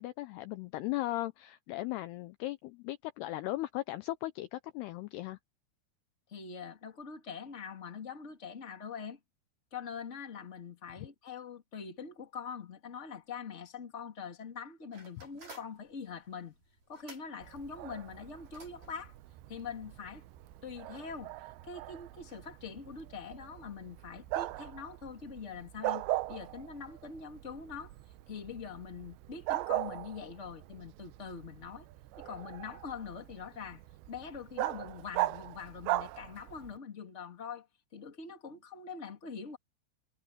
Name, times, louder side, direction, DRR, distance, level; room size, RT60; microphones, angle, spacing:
voice 1, 0.0-5.4, left 17 dB, 80° left, 2.4 m, -37 dB
voice 2, 6.3-9.2 9.7-16.6 16.9-19.1 19.5-20.3 20.6-21.3 21.7-27.9 28.3-31.9 32.2-33.8 34.1-37.7 37.9-39.6, left 6 dB, 20° left, 2.1 m, -44 dB
sound 1, 14.9-20.8, right 2 dB, 45° right, 8.5 m, -57 dB
Bark, 17.4-36.8, right 16 dB, 80° right, 2.9 m, -40 dB
omnidirectional pair, 5.3 m